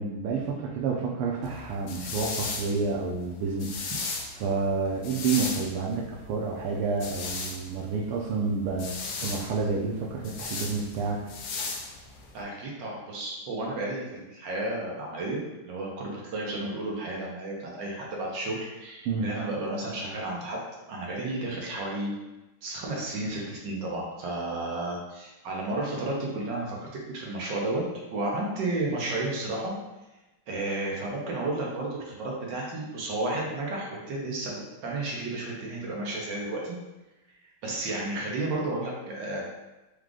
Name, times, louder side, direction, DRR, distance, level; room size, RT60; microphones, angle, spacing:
voice 1, 0.0-3.8 4.4-11.2 19.1-19.3, right 4 dB, 90° right, -3 dB, 1.5 m, -29 dB
sound 1, 1.4-12.4, left 4 dB, 75° left, 0.9 m, -37 dB
voice 2, 12.3-20.6 20.9-22.1 22.6-27.8 28.1-29.7 30.5-36.8 37.6-39.4, right 2 dB, 65° right, -2 dB, 1.3 m, -32 dB
4.8 x 2.4 x 3.7 m, 1.0 s
omnidirectional pair, 2.4 m